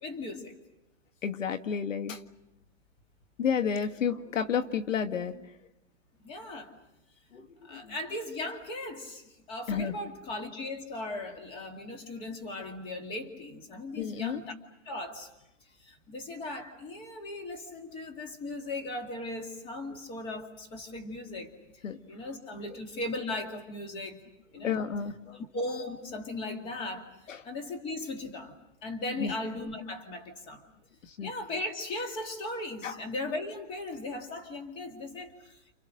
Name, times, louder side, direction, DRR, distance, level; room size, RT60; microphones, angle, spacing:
voice 1, 0.0-0.5 6.2-6.7 7.6-14.5 14.9-15.3 15.8-21.5 22.1-24.2 24.5-24.7 25.5-27.1 27.4-28.5 28.8-30.6 31.2-35.7, left 2 dB, 15° left, 5 dB, 2.2 m, -37 dB
voice 2, 1.2-2.2 3.4-5.4 7.3-7.9 9.7-9.9 14.0-14.4 21.8-22.0 24.6-25.4 27.3-27.4 29.2-29.3 31.1-31.3 32.8-33.0, left 7 dB, 75° left, 7 dB, 1.9 m, -31 dB
29.5 x 29.5 x 6.5 m, 0.91 s
hypercardioid pair, 175°, 39 cm